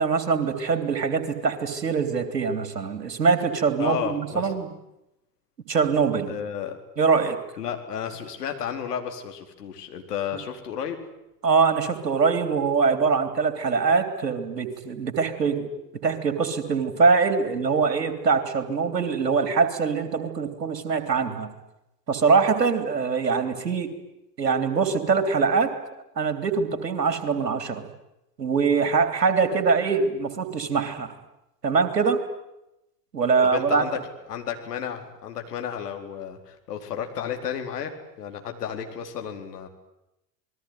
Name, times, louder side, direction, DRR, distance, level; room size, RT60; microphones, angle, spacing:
voice 1, 0.0-4.7 5.7-6.4 7.0-7.4 11.4-15.7 16.0-21.5 22.1-23.9 24.4-25.7 26.2-27.9 28.4-31.2 31.6-32.2 33.1-33.8, right 5 dB, 80° right, 10 dB, 3.5 m, -23 dB
voice 2, 3.8-4.5 6.3-6.8 7.6-11.0 33.4-34.0 34.3-37.9 38.2-39.7, left 8 dB, 70° left, 5 dB, 4.3 m, -32 dB
28.0 x 21.0 x 9.5 m, 0.88 s
figure-of-eight pair, 80°, 48 cm